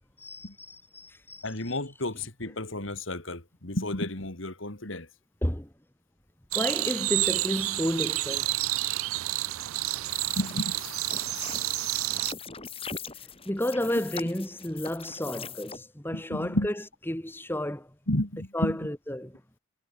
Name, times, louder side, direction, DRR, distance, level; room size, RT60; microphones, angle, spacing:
voice 1, 0.2-1.7 5.4-5.7 6.5-8.5 13.4-16.7 17.1-17.9 18.5-19.4, left 1 dB, 10° left, 1.5 m, -31 dB
voice 2, 1.4-5.1 10.4-10.7 16.1-16.7 18.1-18.8, left 1 dB, 65° left, 3.4 m, -32 dB
sound 1, 6.5-12.3, right 18 dB, 80° right, 0.5 m, -29 dB
sound 2, 9.9-15.8, left 6 dB, 25° left, 4.2 m, -41 dB
head